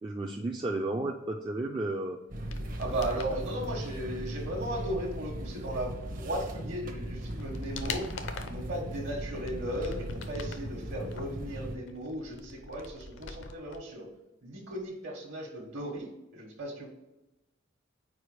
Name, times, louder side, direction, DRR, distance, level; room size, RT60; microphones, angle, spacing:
voice 1, 0.0-2.2, right 2 dB, 25° right, 1 dB, 0.3 m, -33 dB
sound 1, 2.3-3.4 6.4-6.5 7.0-8.7 9.2-10.7 11.1-13.8 14.0-14.1, left 4 dB, 70° left, 0.6 m, -43 dB
sound 2, 2.3-11.8, right 1 dB, 45° right, 0.7 m, -38 dB
voice 2, 2.8-8.1 8.4-14.1 14.4-16.9, right 1 dB, 65° right, 0 dB, 1.2 m, -36 dB
4.8 x 4.5 x 4.9 m, 0.95 s
head